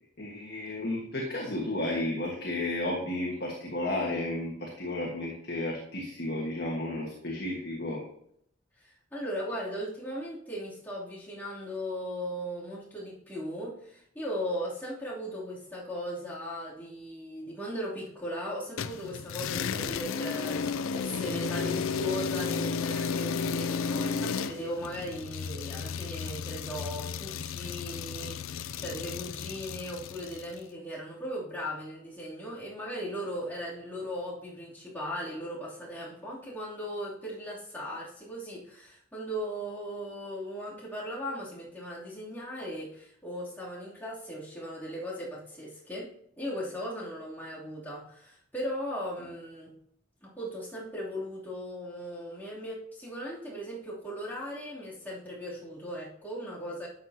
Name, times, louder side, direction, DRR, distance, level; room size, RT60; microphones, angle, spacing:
voice 1, 0.2-8.0 49.2-49.3, left 1 dB, 50° left, -2 dB, 1.5 m, -33 dB
voice 2, 8.8-46.1 46.4-49.7 50.2-56.9, equal, 10° left, -8 dB, 3.0 m, -38 dB
sound 1, 18.8-30.5, left 5 dB, 85° left, 0.4 m, -33 dB
12.0 x 7.4 x 2.9 m, 0.69 s
head